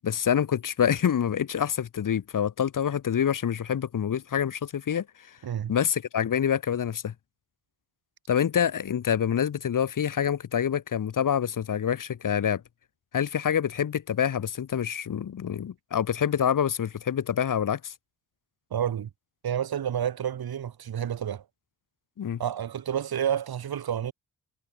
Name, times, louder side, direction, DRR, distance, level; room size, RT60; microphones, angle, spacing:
voice 1, 0.0-5.4 5.7-7.1 8.3-12.6 13.1-17.9 22.2-22.4, left 8 dB, 60° left, 1.5 m, -26 dB
voice 2, 18.7-19.1 19.4-21.4 22.4-24.1, right 9 dB, 90° right, 4.2 m, -29 dB
wide cardioid pair, 130°, 36 cm